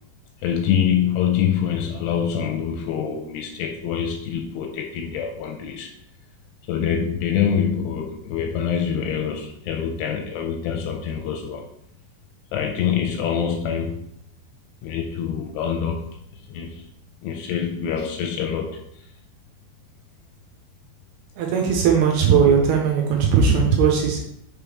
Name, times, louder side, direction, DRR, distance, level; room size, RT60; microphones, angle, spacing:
voice 1, 0.4-5.9 6.7-11.6 12.5-14.2 14.8-16.9 17.2-19.1, left 8 dB, 85° left, 3 dB, 2.4 m, -25 dB
voice 2, 21.4-24.2, right 6 dB, 75° right, 1 dB, 2.5 m, -18 dB
6.7 x 3.6 x 4.7 m, 0.76 s
omnidirectional pair, 5.1 m